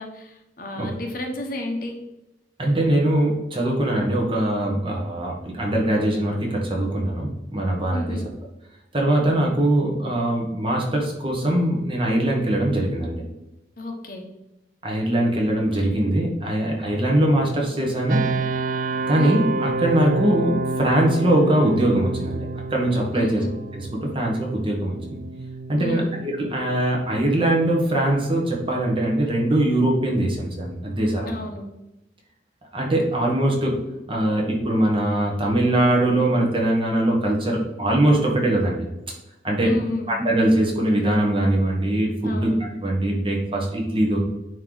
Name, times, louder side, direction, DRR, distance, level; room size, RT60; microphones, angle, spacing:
voice 1, 0.0-2.0 7.9-8.3 13.8-14.2 19.1-19.4 23.1-23.5 25.8-26.1 31.3-31.6 39.6-40.1 42.2-42.6, left 1 dB, 50° left, 2 dB, 1.1 m, -31 dB
voice 2, 2.6-8.2 8.9-13.2 14.8-18.2 19.1-23.4 23.7-25.2 25.7-31.3 32.7-33.8 34.1-38.9 39.4-39.7 40.1-42.5 42.8-44.2, right 1 dB, 30° right, -1 dB, 1.4 m, -22 dB
sound 1, 18.1-30.9, right 3 dB, 45° right, 0.4 m, -30 dB
9.2 x 3.2 x 4.0 m, 0.95 s
head